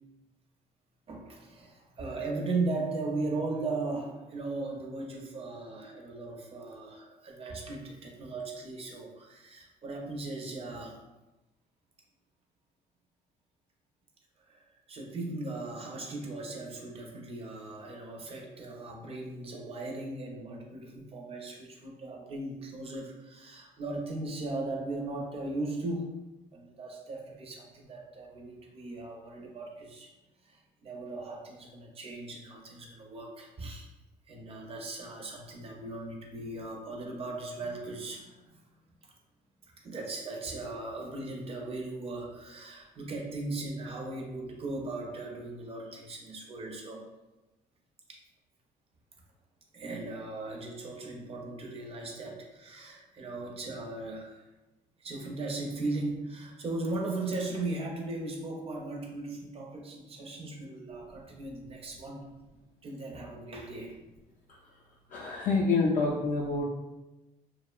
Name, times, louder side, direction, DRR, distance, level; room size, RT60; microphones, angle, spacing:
voice 1, 1.1-11.0 14.5-26.1 26.5-30.1 30.4-33.9 34.3-38.6 39.8-47.0 48.1-48.2 49.7-54.4 55.0-62.3 62.8-64.0, right 2 dB, 35° right, 1 dB, 0.5 m, -38 dB
voice 2, 65.1-66.6, left 3 dB, 50° left, -4 dB, 0.4 m, -27 dB
2.7 x 2.0 x 2.3 m, 1.0 s
cardioid pair, 110°, 17 cm